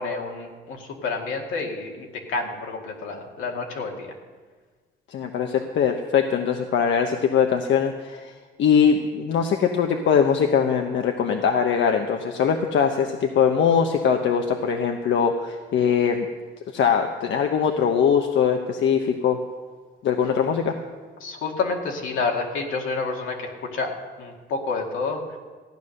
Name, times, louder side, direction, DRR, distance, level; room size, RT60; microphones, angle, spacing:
voice 1, 0.0-4.1 21.2-23.9 24.2-25.2, left 4 dB, 90° left, 1 dB, 2.2 m, -29 dB
voice 2, 5.1-8.3 8.6-16.3 16.7-19.4 20.0-20.7, left 7 dB, 70° left, 4 dB, 1.0 m, -21 dB
14.5 x 9.5 x 6.5 m, 1.4 s
cardioid pair, 90°, 20 cm